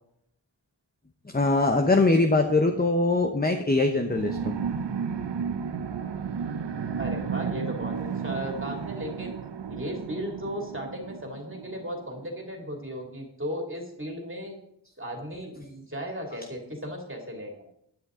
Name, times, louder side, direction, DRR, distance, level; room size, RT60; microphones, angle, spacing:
voice 1, 1.3-4.6, left 2 dB, 20° left, 5 dB, 0.9 m, -22 dB
sound 1, 4.1-12.3, right 6 dB, 80° right, 0.7 m, -33 dB
voice 2, 7.0-9.4 9.7-14.6 15.0-17.7, equal, 30° right, 1 dB, 2.6 m, -36 dB
11.5 x 10.0 x 3.7 m, 0.74 s
wide cardioid pair, 50°, 41 cm